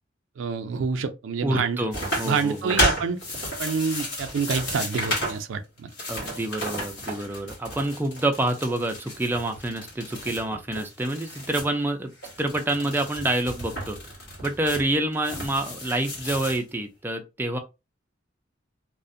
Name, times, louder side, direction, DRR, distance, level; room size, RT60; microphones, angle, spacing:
voice 1, 0.4-1.8 2.2-3.2 3.6-5.9, right 5 dB, 90° right, 0.4 m, -27 dB
voice 2, 1.4-2.8 6.1-12.1 12.4-14.0 14.4-17.6, right 1 dB, 10° right, 0.3 m, -27 dB
sound 1, 1.9-5.4 5.8-11.7 12.1-16.6, equal, 65° left, 1.2 m, -32 dB
2.4 x 2.1 x 2.5 m
head